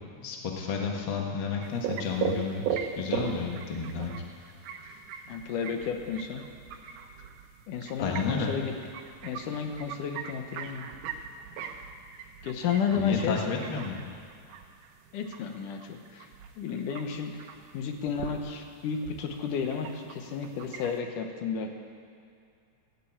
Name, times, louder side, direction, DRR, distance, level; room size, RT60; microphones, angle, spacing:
voice 1, 0.2-4.1 8.0-8.5 13.0-14.0, left 5 dB, 45° left, 0 dB, 1.8 m, -31 dB
sound 1, 1.6-21.0, right 8 dB, 75° right, 2.1 m, -39 dB
voice 2, 5.3-6.4 7.7-8.7 9.2-10.9 12.4-13.4 15.1-16.3 16.6-17.4 17.7-21.7, left 6 dB, 80° left, 4 dB, 2.5 m, -32 dB
15.0 x 7.6 x 8.6 m, 2.4 s
omnidirectional pair, 3.6 m